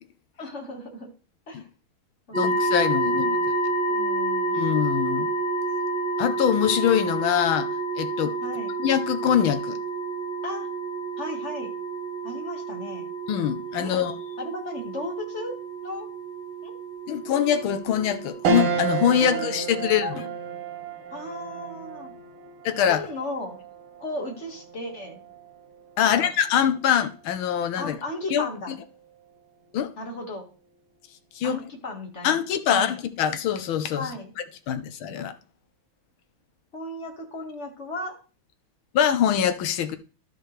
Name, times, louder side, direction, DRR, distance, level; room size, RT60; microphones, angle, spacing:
voice 1, 0.4-1.1 1.5-1.7 2.3-3.5 3.9-4.6 8.4-8.7 10.4-10.7 11.2-11.7 12.2-13.1 13.8-13.9 14.4-15.5 15.8-16.1 16.6-16.7 19.2-19.7 20.0-20.3 21.1-22.1 22.9-23.6 24.0-25.2 26.0-26.3 27.8-28.7 30.0-30.5 31.4-32.4 32.7-33.0 34.0-34.3 36.7-38.2, left 1 dB, 35° left, 2.0 m, -35 dB
voice 2, 2.3-3.4 4.5-5.3 6.2-8.4 8.8-9.8 13.3-14.1 17.1-20.1 22.6-23.0 26.0-28.0 28.3-28.8 29.7-29.9 31.3-31.6 32.2-34.1 34.7-35.3 38.9-40.0, left 9 dB, 85° left, 1.7 m, -24 dB
sound 1, 2.3-19.2, right 2 dB, 25° right, 3.2 m, -29 dB
sound 2, 18.4-28.0 28.5-28.6 29.9-30.4, right 6 dB, 80° right, 1.9 m, -33 dB
12.5 x 6.1 x 3.3 m
omnidirectional pair, 2.2 m